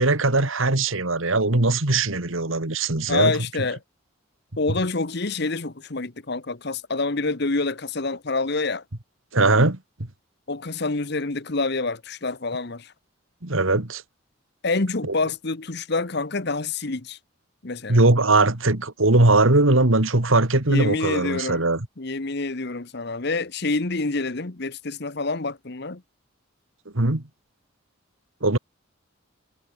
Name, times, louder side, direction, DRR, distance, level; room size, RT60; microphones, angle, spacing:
voice 1, 0.0-3.3 9.3-9.8 13.4-14.0 17.9-21.8 26.9-27.2 28.4-28.6, right 2 dB, 80° right, 2.4 m, -20 dB
voice 2, 3.1-3.8 4.6-8.8 10.5-12.9 14.6-17.2 17.6-18.0 20.7-21.7 22.0-26.0, left 3 dB, 55° left, 1.2 m, -27 dB
head